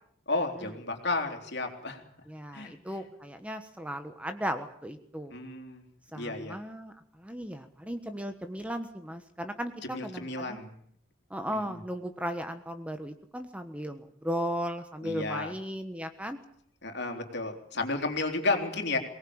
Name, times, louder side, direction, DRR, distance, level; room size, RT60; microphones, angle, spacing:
voice 1, 0.3-2.0 2.5-3.0 5.3-5.8 6.2-6.6 9.8-10.7 11.5-11.8 15.0-15.5 16.8-19.0, left 3 dB, 55° left, 5 dB, 3.7 m, -32 dB
voice 2, 2.3-5.3 6.1-6.9 7.2-9.7 10.0-10.6 11.3-16.4, equal, 5° right, 8 dB, 1.3 m, -36 dB
23.5 x 19.0 x 8.8 m, 0.64 s
head